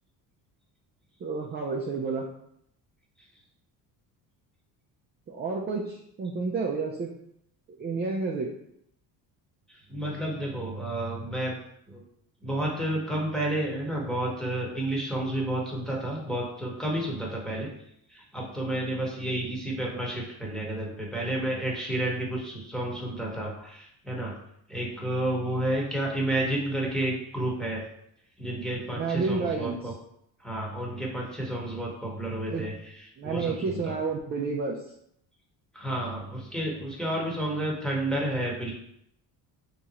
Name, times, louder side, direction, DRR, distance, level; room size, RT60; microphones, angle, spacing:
voice 1, 1.2-2.3 5.3-7.1 7.8-8.5 28.9-29.9 32.5-32.6 33.2-34.8, right 4 dB, 25° right, -1 dB, 0.4 m, -30 dB
voice 2, 9.9-11.6 11.9-12.0 12.4-17.7 18.1-24.4 24.7-27.8 28.4-29.9 30.4-32.7 33.2-34.0 35.7-38.7, right 1 dB, ahead, -3 dB, 1.1 m, -31 dB
3.6 x 2.9 x 4.1 m, 0.73 s
cardioid pair, 125°, 39 cm